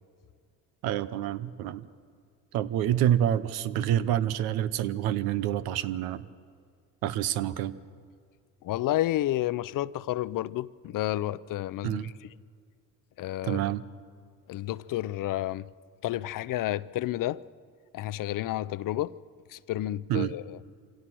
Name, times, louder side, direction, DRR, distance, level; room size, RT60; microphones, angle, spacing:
voice 1, 0.8-1.9 2.5-6.2 7.0-7.7 11.8-12.1 13.4-13.8 20.1-20.3, right 11 dB, 85° right, 0.9 m, -27 dB
voice 2, 8.6-12.1 13.2-13.6 14.5-15.7 16.0-17.4 17.9-19.1 19.5-20.6, left 14 dB, 65° left, 0.6 m, -30 dB
25.0 x 17.0 x 6.2 m
supercardioid pair, 75°, 36 cm